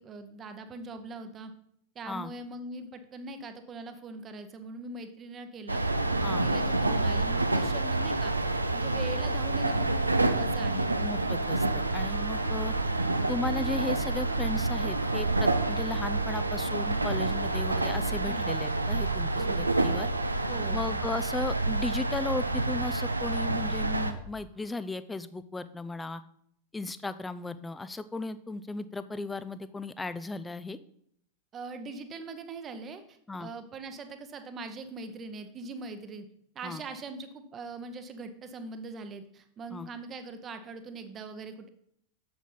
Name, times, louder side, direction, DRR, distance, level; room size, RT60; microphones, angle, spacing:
voice 1, 0.0-1.5 1.9-5.8 6.2-8.3 8.7-10.9 18.2-18.5 19.4-19.7 20.5-20.8 31.5-36.3 36.5-41.7, right 3 dB, 25° right, 8 dB, 0.9 m, -41 dB
sound 1, 5.7-24.1, right 2 dB, 85° right, 0.5 m, -28 dB
voice 2, 11.0-12.7 13.3-20.1 20.7-26.2 26.7-30.8 33.3-33.5 36.6-36.8 39.7-39.9, left 3 dB, 10° left, 13 dB, 0.4 m, -36 dB
sound 2, 11.1-24.2 24.7-24.8, right 9 dB, 55° right, 1.1 m, -48 dB
7.3 x 7.0 x 3.9 m, 0.69 s
figure-of-eight pair, 90°, 0 cm